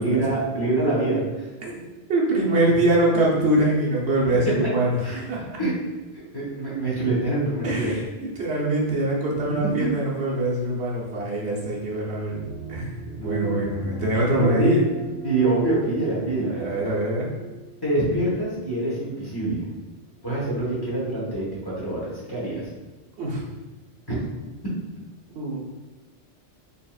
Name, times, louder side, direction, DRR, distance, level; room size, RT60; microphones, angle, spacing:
voice 1, 0.0-1.5 5.0-5.2 5.6-5.8 6.1-7.9 9.5-9.9 13.2-13.7 14.4-14.8 15.2-16.7 17.8-19.7 20.2-22.7 24.1-24.2, right 2 dB, 20° left, -8 dB, 1.1 m, -25 dB
voice 2, 2.1-5.6 7.6-12.4 12.7-12.9 13.2-14.8 16.5-17.3 23.2-23.4 25.3-25.6, right 1 dB, 70° right, -4 dB, 1.1 m, -23 dB
sound 1, 12.3-18.9, right 4 dB, 80° left, 1.1 m, -38 dB
4.1 x 3.4 x 2.4 m, 1.2 s
omnidirectional pair, 1.2 m